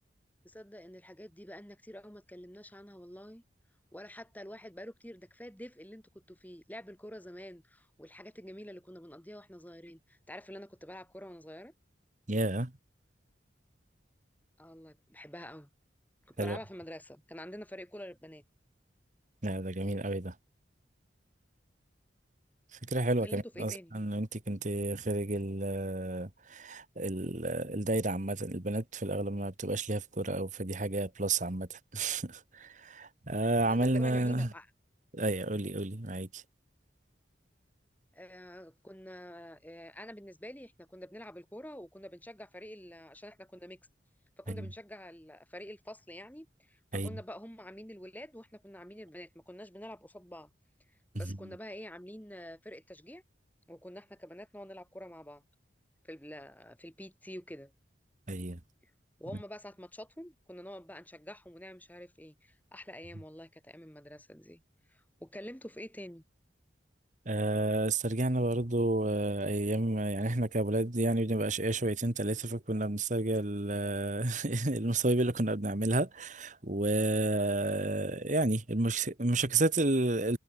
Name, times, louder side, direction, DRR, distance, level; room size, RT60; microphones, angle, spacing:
voice 1, 0.4-3.4 3.9-11.7 14.6-15.7 16.3-18.4 23.2-24.0 33.6-34.7 38.1-43.8 44.4-50.5 51.1-53.2 53.7-55.4 56.0-57.7 59.2-64.6 64.9-66.2, equal, 10° left, 5.4 m, -47 dB
voice 2, 12.3-12.7 16.4-16.6 19.4-20.3 22.8-34.5 35.1-36.4 44.5-44.6 46.9-47.2 51.2-51.3 58.3-58.6 67.2-80.4, right 2 dB, 45° right, 1.6 m, -31 dB
head